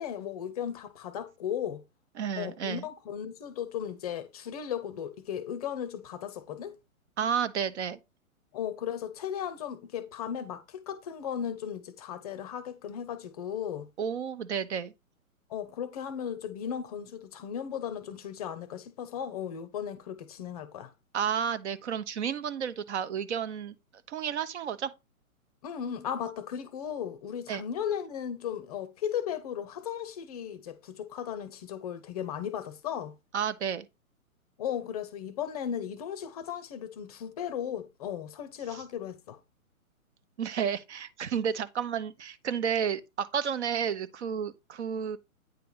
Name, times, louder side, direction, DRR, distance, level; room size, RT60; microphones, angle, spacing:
voice 1, 0.0-1.8 2.4-6.7 8.5-13.9 15.5-20.9 25.6-33.1 34.6-39.4, left 9 dB, 25° left, 0.6 m, -36 dB
voice 2, 2.2-2.9 7.2-8.0 14.0-14.9 21.1-23.8 24.1-24.9 27.5-27.6 33.3-33.9 38.7-38.8 40.4-45.2, right 7 dB, 50° right, 1.0 m, -31 dB
9.1 x 3.3 x 5.5 m
hypercardioid pair, 135°, 43 cm